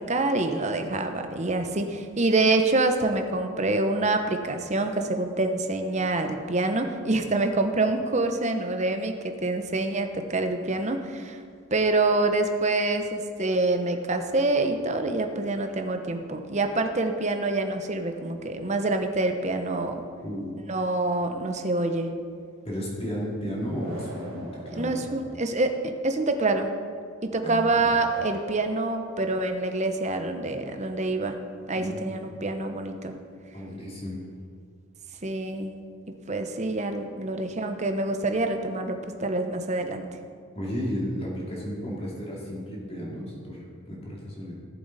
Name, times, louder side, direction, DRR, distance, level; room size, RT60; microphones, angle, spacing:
voice 1, 0.0-11.4 11.7-20.0 20.7-22.1 24.7-25.7 26.0-26.7 27.2-31.4 31.7-33.2 35.2-35.7 36.3-40.0, right 2 dB, 30° right, 6 dB, 0.9 m, -26 dB
voice 2, 20.2-20.5 22.6-25.0 27.4-27.9 31.7-32.2 33.5-34.3 40.5-44.5, equal, 30° left, -4 dB, 2.8 m, -33 dB
sound 1, 23.7-25.7 27.8-29.9, right 1 dB, 70° right, 2.8 m, -43 dB
17.5 x 7.7 x 4.1 m, 2.2 s
head